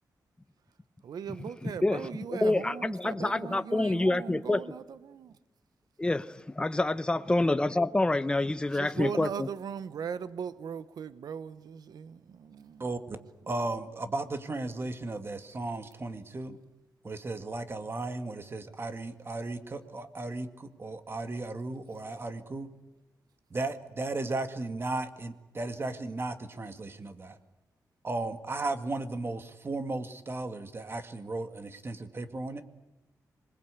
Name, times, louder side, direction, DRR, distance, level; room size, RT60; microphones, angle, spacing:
voice 1, 1.0-5.4 8.7-12.9 13.4-13.5, right 7 dB, 80° right, 0.9 m, -39 dB
voice 2, 2.3-4.6 6.0-9.3, left 2 dB, 15° left, 0.8 m, -27 dB
voice 3, 12.8-13.2 13.5-16.6 17.0-22.7 23.5-27.4 28.0-32.6, right 2 dB, 35° right, 2.0 m, -35 dB
26.5 x 21.0 x 8.3 m
cardioid pair, 100°, 7 cm